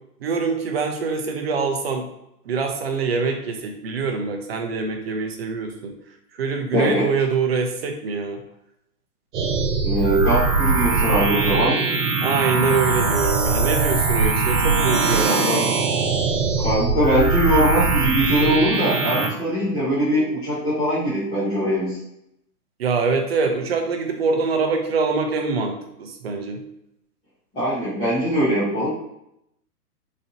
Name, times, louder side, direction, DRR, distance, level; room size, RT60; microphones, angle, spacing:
voice 1, 0.2-2.1 2.5-5.9 6.4-8.4 12.2-15.5 22.8-26.6, right 4 dB, 40° right, 4 dB, 0.5 m, -24 dB
voice 2, 6.7-7.1 9.8-11.8 15.3-15.6 16.6-22.0 27.5-28.9, equal, 5° left, -16 dB, 0.6 m, -21 dB
sound 1, 9.3-19.3, right 4 dB, 75° right, 1.0 m, -21 dB
4.0 x 2.7 x 2.6 m, 0.82 s
hypercardioid pair, 155°, 47 cm